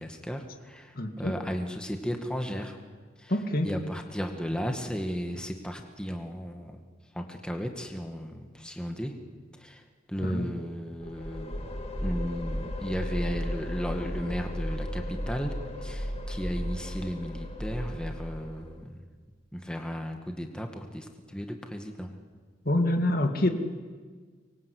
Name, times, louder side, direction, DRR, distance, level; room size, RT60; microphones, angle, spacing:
voice 1, 0.0-2.8 3.2-3.3 3.6-6.8 7.1-9.1 9.6-9.8 10.1-11.7 12.0-15.5 15.8-19.0 19.5-22.1, equal, 5° left, 4 dB, 2.0 m, -35 dB
voice 2, 1.0-1.4 3.3-3.7 10.2-10.5 22.7-23.5, left 1 dB, 50° left, 6 dB, 2.1 m, -26 dB
sound 1, 11.0-18.8, equal, 35° left, 2.4 m, -34 dB
25.5 x 23.0 x 8.5 m, 1.5 s
head